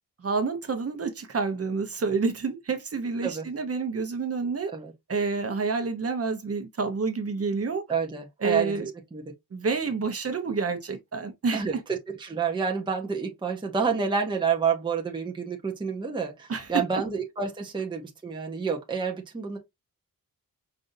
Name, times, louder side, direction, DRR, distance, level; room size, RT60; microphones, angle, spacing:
voice 1, 0.2-4.7 5.1-7.8 8.4-8.9 9.5-11.6 16.5-16.8, right 4 dB, 40° right, 0.8 m, -28 dB
voice 2, 7.9-9.2 11.5-11.8 12.1-19.6, right 6 dB, 15° right, 0.6 m, -29 dB
5.1 x 2.6 x 2.6 m
wide cardioid pair, 155°, 35 cm